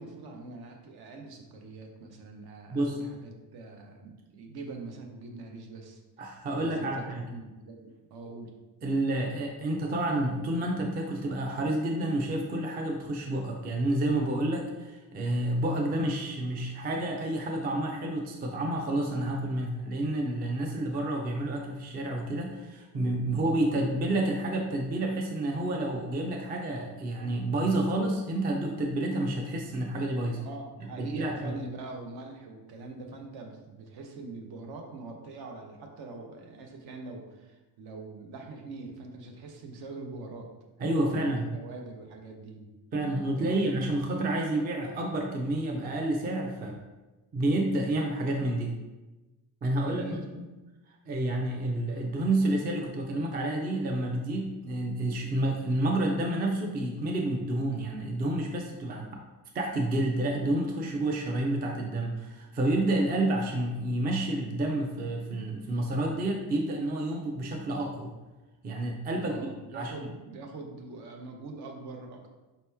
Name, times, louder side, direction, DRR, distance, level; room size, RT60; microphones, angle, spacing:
voice 1, 0.0-6.0 6.5-8.5 30.3-40.5 41.0-42.7 43.3-43.6 49.8-50.2 69.2-72.3, right 3 dB, 65° right, 2 dB, 0.9 m, -43 dB
voice 2, 2.7-3.0 6.2-7.3 8.8-30.4 31.0-31.6 40.8-41.5 42.9-46.8 47.3-48.8 49.6-50.5 51.1-59.1 59.5-68.1 68.6-69.9, right 1 dB, 25° right, 1 dB, 0.4 m, -29 dB
5.3 x 2.9 x 3.4 m, 1.1 s
cardioid pair, 175°, 41 cm